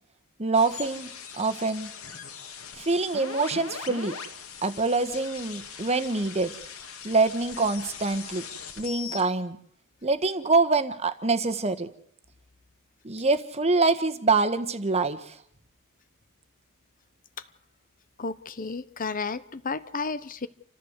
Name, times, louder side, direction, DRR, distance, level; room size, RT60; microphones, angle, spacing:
voice 1, 0.4-1.9 2.7-4.1 4.6-6.5 7.0-8.4 8.8-9.6 10.0-11.9 13.0-15.4, right 3 dB, 30° right, 10 dB, 1.4 m, -25 dB
sound 1, 0.5-9.2, left 6 dB, 70° left, 3.0 m, -40 dB
voice 2, 18.2-20.5, left 4 dB, 40° left, 14 dB, 0.8 m, -32 dB
29.0 x 14.0 x 8.2 m, 0.66 s
head